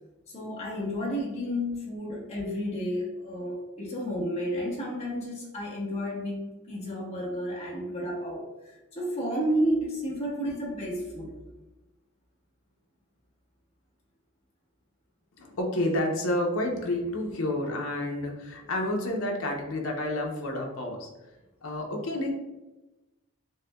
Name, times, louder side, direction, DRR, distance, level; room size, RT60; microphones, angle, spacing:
voice 1, 0.3-11.3, equal, 30° left, -4 dB, 1.0 m, -31 dB
voice 2, 15.4-21.1 21.6-22.3, left 1 dB, 80° left, 1 dB, 0.7 m, -29 dB
6.3 x 2.2 x 2.2 m, 1.0 s
head